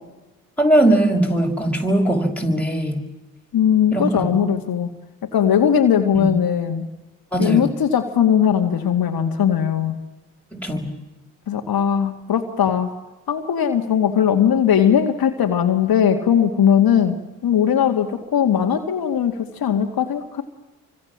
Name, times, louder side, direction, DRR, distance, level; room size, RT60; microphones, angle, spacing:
voice 1, 0.6-3.0 3.9-4.1 6.1-6.3 7.3-7.7 10.5-10.9, right 1 dB, 5° left, 0 dB, 6.1 m, -19 dB
voice 2, 3.5-4.9 5.3-6.9 7.4-9.9 11.5-12.9 13.3-20.4, left 8 dB, 60° left, 4 dB, 2.1 m, -19 dB
28.0 x 25.0 x 7.4 m, 1.1 s
hypercardioid pair, 45°, 42 cm